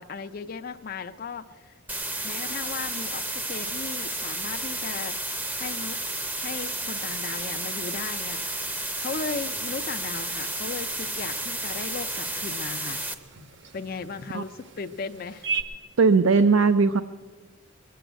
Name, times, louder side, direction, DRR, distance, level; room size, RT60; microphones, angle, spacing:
voice 1, 0.0-1.7 2.2-5.2 5.6-6.0 6.4-13.0 13.7-15.5, left 5 dB, 45° left, 8 dB, 0.4 m, -36 dB
sound 1, 1.9-13.1, right 1 dB, 10° right, 0.6 m, -32 dB
sound 2, 9.0-15.6, right 5 dB, 55° right, 1.0 m, -40 dB
voice 2, 16.0-17.0, right 4 dB, 70° right, 11 dB, 0.5 m, -18 dB
22.0 x 7.6 x 7.9 m, 1.4 s
head